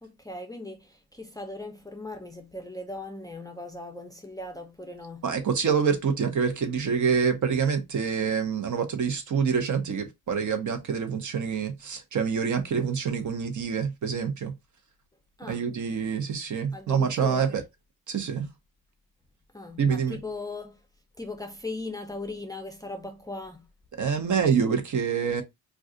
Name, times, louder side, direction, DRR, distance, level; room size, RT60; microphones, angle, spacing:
voice 1, 0.0-5.3 15.4-15.7 16.7-17.6 19.5-20.8 21.1-23.7, left 2 dB, 10° left, 0.5 m, -39 dB
voice 2, 5.2-14.5 15.5-17.6 18.1-18.4 19.8-20.2 24.0-25.4, right 6 dB, 50° right, 0.8 m, -26 dB
2.4 x 2.3 x 3.6 m
cardioid pair, 100°, 38 cm